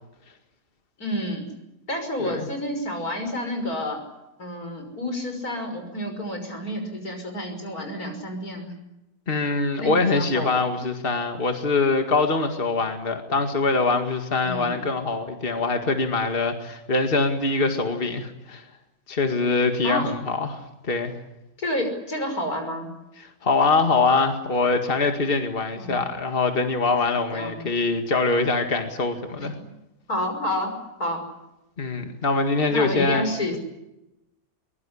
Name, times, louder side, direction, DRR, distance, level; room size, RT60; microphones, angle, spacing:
voice 1, 1.0-1.5 1.9-4.0 4.4-8.7 9.8-10.5 14.4-14.8 19.8-20.1 21.6-22.9 25.8-26.0 27.3-27.7 29.4-29.5 30.1-30.7 31.0-31.2 32.7-33.6, left 1 dB, 85° left, 5 dB, 6.2 m, -29 dB
voice 2, 9.3-18.6 19.1-21.1 23.2-29.6 31.8-33.6, left 3 dB, 40° left, 5 dB, 2.2 m, -23 dB
23.5 x 22.0 x 9.9 m, 0.93 s
omnidirectional pair, 1.5 m